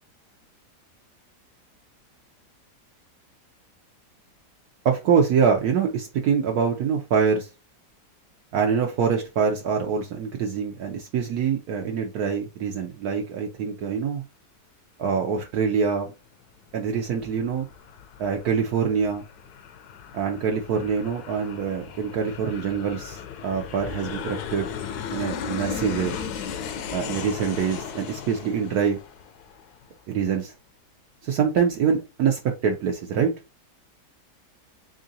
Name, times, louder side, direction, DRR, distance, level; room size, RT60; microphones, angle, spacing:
voice 1, 4.8-7.5 8.5-14.2 15.0-16.1 16.7-17.7 18.2-19.2 20.1-24.7 25.1-26.1 26.9-29.0 30.1-30.5 31.2-33.3, right 6 dB, 70° right, 1.1 m, -25 dB
Aircraft, 16.7-29.9, left 7 dB, 75° left, 1.1 m, -36 dB
3.7 x 3.7 x 2.7 m
omnidirectional pair, 1.8 m